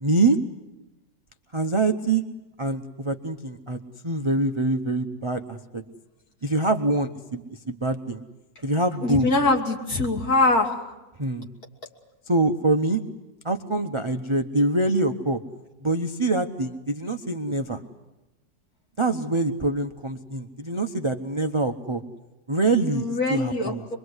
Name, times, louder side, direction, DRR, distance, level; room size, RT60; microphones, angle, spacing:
voice 1, 0.0-0.4 1.5-2.2 2.6-5.8 6.4-8.2 8.6-9.3 11.2-11.5 12.3-13.0 13.4-15.4 15.8-17.8 19.0-22.0 22.5-23.8, right 2 dB, 30° right, 7 dB, 0.5 m, -25 dB
voice 2, 9.0-10.7 22.9-24.0, left 2 dB, 55° left, 1 dB, 3.1 m, -23 dB
25.5 x 22.5 x 8.0 m, 1.0 s
omnidirectional pair, 1.9 m